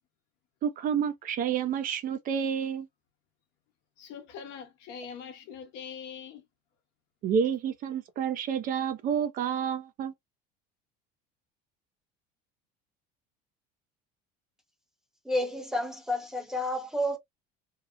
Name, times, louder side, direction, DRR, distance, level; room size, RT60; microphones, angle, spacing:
voice 1, 0.6-2.9 7.2-10.1, right 7 dB, 45° right, 0.5 m, -29 dB
voice 2, 4.0-6.4, left 7 dB, 65° left, 0.9 m, -43 dB
voice 3, 15.2-17.2, left 1 dB, 5° right, 0.8 m, -30 dB
2.8 x 2.0 x 2.4 m
cardioid pair, 125°, 20 cm